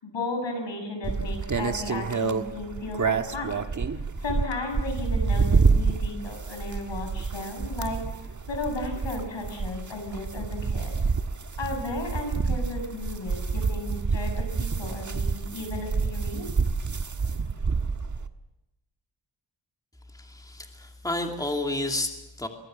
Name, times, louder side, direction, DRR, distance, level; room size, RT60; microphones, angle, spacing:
voice 1, 0.0-3.6 4.2-8.0 8.5-10.9 11.6-16.5, left 2 dB, 80° left, 4 dB, 7.8 m, -34 dB
sound 1, 1.0-18.3, right 4 dB, 40° right, 1.4 m, -28 dB
voice 2, 20.1-22.5, left 2 dB, 10° left, 3 dB, 2.7 m, -31 dB
23.5 x 22.5 x 7.6 m, 0.92 s
wide cardioid pair, 105°, 44 cm